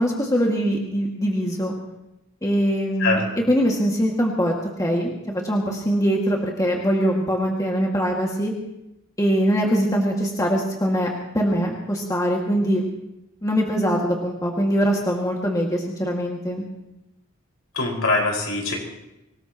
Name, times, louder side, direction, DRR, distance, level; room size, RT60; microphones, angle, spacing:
voice 1, 0.0-1.7 2.4-3.2 3.5-4.5 4.8-8.5 9.2-11.1 11.3-12.8 13.4-16.6, equal, 15° left, -1 dB, 2.1 m, -22 dB
voice 2, 17.7-18.8, left 3 dB, 70° left, -1 dB, 5.3 m, -22 dB
25.0 x 19.0 x 3.0 m, 0.90 s
head